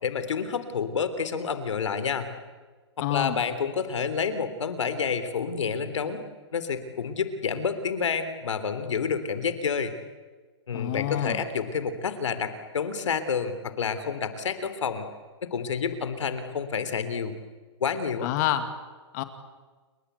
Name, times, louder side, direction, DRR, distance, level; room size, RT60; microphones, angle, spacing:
voice 1, 0.0-2.3 3.0-6.2 6.5-9.9 10.7-15.1 15.4-17.3 17.8-18.3, left 6 dB, 85° left, 11 dB, 3.5 m, -29 dB
voice 2, 3.0-3.4 10.7-11.4 18.2-18.7 19.1-19.2, left 12 dB, 35° left, 9 dB, 2.3 m, -27 dB
29.0 x 22.5 x 8.3 m, 1.3 s
hypercardioid pair, 155°, 15 cm